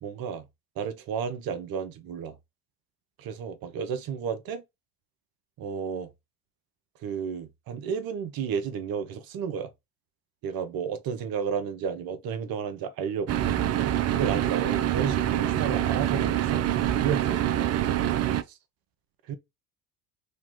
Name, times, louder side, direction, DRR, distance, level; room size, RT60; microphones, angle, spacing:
voice 1, 0.0-0.4 0.8-2.4 3.2-4.6 5.6-6.1 7.0-9.7 10.4-13.5 14.1-18.0 18.5-18.6 19.3-19.4, right 7 dB, 50° right, 0.9 m, -32 dB
sound 1, 13.3-18.4, right 11 dB, 35° right, 0.5 m, -25 dB
3.1 x 2.9 x 3.6 m
hypercardioid pair, 65°, 44 cm